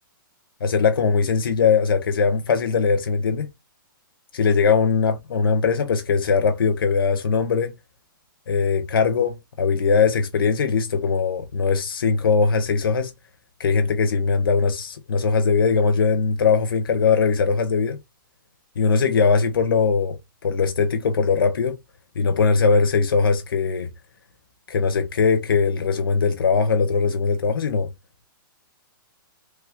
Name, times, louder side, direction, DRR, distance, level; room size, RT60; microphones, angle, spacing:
voice 1, 0.6-3.5 4.3-7.7 8.5-13.1 13.6-18.0 18.8-20.2 20.4-21.8 22.2-23.9 24.7-27.9, left 5 dB, 80° left, 0.6 m, -20 dB
3.2 x 2.2 x 3.4 m
hypercardioid pair, 160°, 12 cm